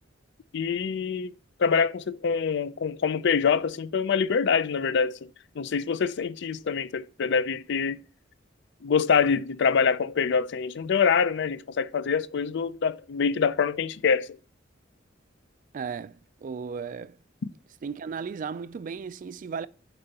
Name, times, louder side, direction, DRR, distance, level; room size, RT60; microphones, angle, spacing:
voice 1, 0.5-1.3 1.6-5.2 5.6-8.0 8.8-14.3, left 6 dB, 65° left, 0.4 m, -25 dB
voice 2, 15.7-17.2 17.8-19.7, right 6 dB, 45° right, 0.3 m, -35 dB
9.0 x 5.3 x 2.8 m
head